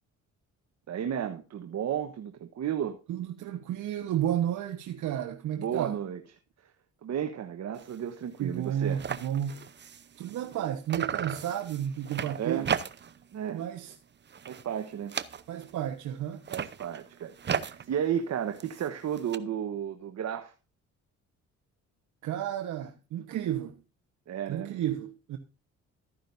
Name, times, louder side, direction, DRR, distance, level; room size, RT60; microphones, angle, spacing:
voice 1, 0.9-3.0 5.6-6.2 7.0-9.0 12.4-12.7 13.3-13.6 14.5-15.2 16.5-20.5 24.3-24.8, right 9 dB, 60° right, 1.2 m, -33 dB
voice 2, 3.1-6.0 8.4-9.6 10.2-12.8 13.5-13.9 15.5-16.4 22.2-23.8 24.5-25.4, right 10 dB, 80° right, 1.2 m, -32 dB
sound 1, 7.7-8.0 8.3-8.4 8.6-10.6 10.9-13.3 13.6-14.0 14.3-15.8 16.3-19.4, right 7 dB, 35° right, 0.8 m, -36 dB
13.5 x 10.0 x 2.6 m
cardioid pair, 90°, 30 cm